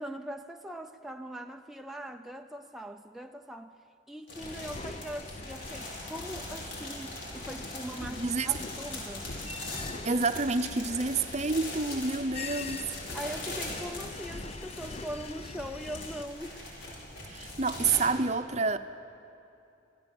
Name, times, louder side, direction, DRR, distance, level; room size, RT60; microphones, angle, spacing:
voice 1, 0.0-3.8 4.1-9.3 13.1-16.7, equal, ahead, 0.5 m, -41 dB
sound 1, 4.3-18.0, left 2 dB, 85° left, 5.8 m, -42 dB
sound 2, 4.4-16.2, left 3 dB, 35° left, 0.7 m, -43 dB
voice 2, 8.1-8.5 10.0-12.9 17.3-18.8, right 4 dB, 40° right, 0.8 m, -28 dB
26.5 x 15.5 x 7.8 m
head